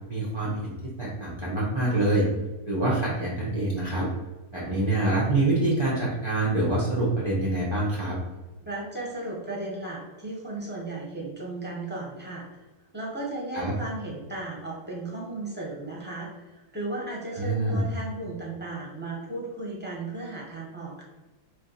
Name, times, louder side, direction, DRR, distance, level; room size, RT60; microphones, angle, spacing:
voice 1, 0.1-2.3 2.7-4.1 4.5-8.2 13.5-13.7 17.3-17.8, right 2 dB, 35° right, -7 dB, 0.4 m, -26 dB
voice 2, 8.6-12.5 12.9-21.0, right 2 dB, 10° right, -3 dB, 0.7 m, -35 dB
3.2 x 2.6 x 3.9 m, 1.1 s
omnidirectional pair, 1.6 m